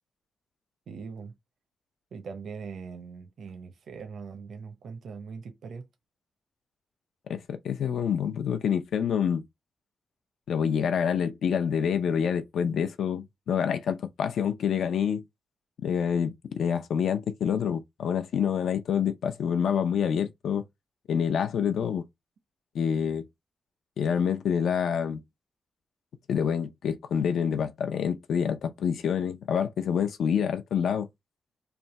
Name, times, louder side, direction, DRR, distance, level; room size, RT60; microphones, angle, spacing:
voice 1, 0.9-1.3 2.1-5.8 12.6-12.7, right 5 dB, 65° right, 0.8 m, -41 dB
voice 2, 7.3-9.4 10.5-15.2 15.8-20.6 21.1-22.0 22.7-23.3 24.0-25.2 26.3-31.1, left 7 dB, 80° left, 0.6 m, -27 dB
3.4 x 2.6 x 4.1 m
wide cardioid pair, 155°, 0 cm